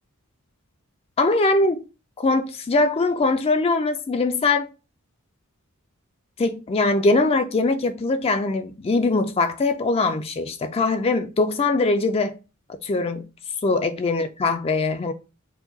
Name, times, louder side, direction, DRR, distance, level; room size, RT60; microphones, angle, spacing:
voice 1, 1.2-1.8 2.2-4.7 6.4-12.3 12.8-13.2 13.6-15.1, left 3 dB, 25° left, 0.3 m, -22 dB
4.8 x 2.2 x 3.8 m
head